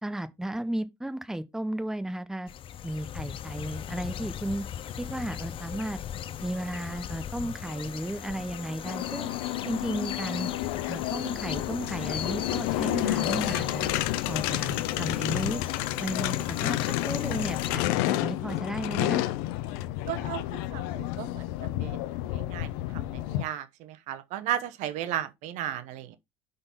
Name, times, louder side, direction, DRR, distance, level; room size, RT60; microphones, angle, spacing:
voice 1, 0.0-2.5 2.8-4.7 5.0-6.0 6.4-9.3 9.6-10.5 10.9-14.0 14.3-15.6 16.0-19.2, right 1 dB, 5° right, 0.8 m, -34 dB
sound 1, 2.5-17.7, left 10 dB, 45° left, 0.7 m, -38 dB
sound 2, 8.9-23.4, left 15 dB, 85° left, 0.7 m, -30 dB
voice 2, 20.1-21.4 21.8-22.0 22.3-22.7 23.3-26.2, right 11 dB, 70° right, 0.9 m, -34 dB
5.9 x 4.0 x 5.3 m
supercardioid pair, 100°, 13 cm